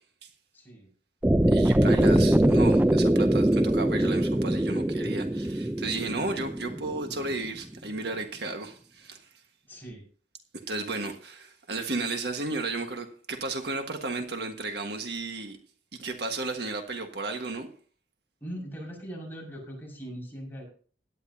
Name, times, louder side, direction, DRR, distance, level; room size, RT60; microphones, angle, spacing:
voice 1, 0.5-0.9 2.4-2.7 9.7-10.0 18.4-20.7, equal, 10° left, 5.7 m, -40 dB
sound 1, 1.2-7.3, right 1 dB, 10° right, 0.4 m, -23 dB
voice 2, 1.5-9.2 10.7-15.6 16.0-17.7, right 3 dB, 65° right, 1.6 m, -33 dB
17.0 x 11.0 x 2.8 m
head